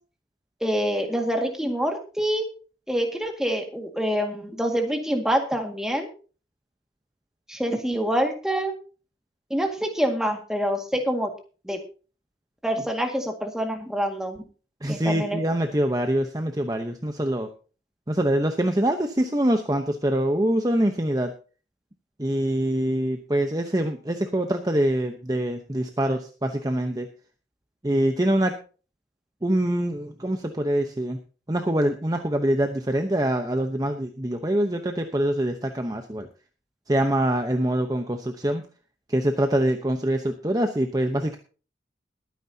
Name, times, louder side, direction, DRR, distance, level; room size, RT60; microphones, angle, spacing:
voice 1, 0.6-2.5 2.9-6.1 7.5-8.7 9.5-11.3 11.7-11.8 12.6-14.4 14.9-15.4, equal, 5° right, 3 dB, 1.9 m, -26 dB
voice 2, 14.8-17.5 18.1-21.3 22.2-27.1 27.8-28.5 29.4-31.2 31.5-36.3 36.9-38.6 39.1-41.4, right 1 dB, 20° right, 5 dB, 0.9 m, -24 dB
21.5 x 9.4 x 2.8 m, 0.37 s
head